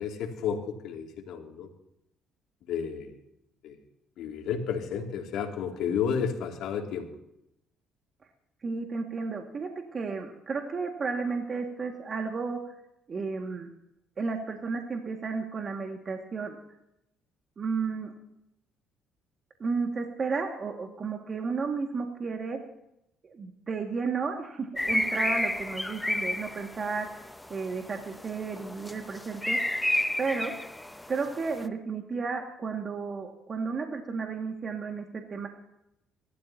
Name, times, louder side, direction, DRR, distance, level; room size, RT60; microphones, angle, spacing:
voice 1, 0.0-1.7 2.7-3.2 3.6-3.8 4.2-7.1, left 7 dB, 75° left, 2 dB, 2.7 m, -32 dB
voice 2, 8.6-12.6 13.1-13.7 14.2-16.6 17.6-18.1 19.6-22.6 23.3-29.6 30.2-30.5 31.1-35.5, right 4 dB, 40° right, 2 dB, 2.1 m, -33 dB
sound 1, 24.8-31.7, left 1 dB, 10° left, 0.8 m, -32 dB
24.5 x 13.0 x 2.9 m, 0.83 s
supercardioid pair, 70°, 0 cm